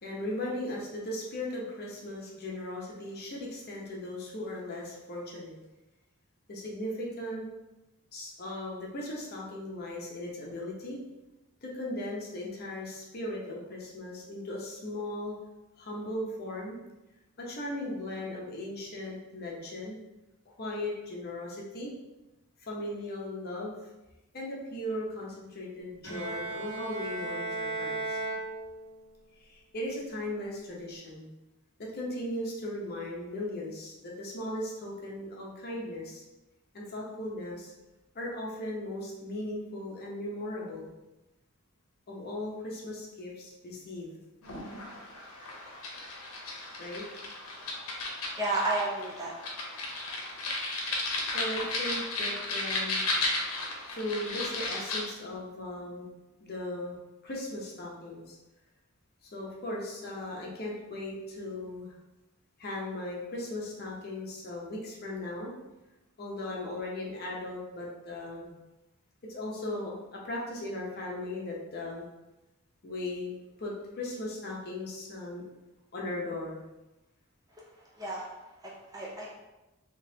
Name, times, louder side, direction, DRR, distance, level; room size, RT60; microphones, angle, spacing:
voice 1, 0.0-5.5 6.5-7.5 8.1-11.0 11.6-15.3 15.8-16.8 17.4-20.0 20.5-21.9 22.6-23.8 24.3-28.2 29.4-31.3 31.8-36.2 36.7-37.7 38.1-40.9 42.1-44.1 46.8-47.0 51.3-53.1 53.9-56.1 56.4-57.0 57.2-58.4 59.2-61.9 62.6-65.5 66.2-68.5 69.3-72.0 72.8-73.3 73.6-75.4 75.9-76.6, left 1 dB, 45° left, -3 dB, 0.8 m, -37 dB
Bowed string instrument, 26.0-29.2, right 2 dB, 65° right, 1.4 m, -36 dB
sound 1, 44.4-55.0, left 2 dB, 75° left, 0.8 m, -34 dB
voice 2, 48.4-49.4 66.6-66.7 78.0-78.3 78.6-79.3, right 2 dB, 15° right, -3 dB, 0.5 m, -32 dB
3.7 x 2.9 x 2.7 m, 1.0 s
head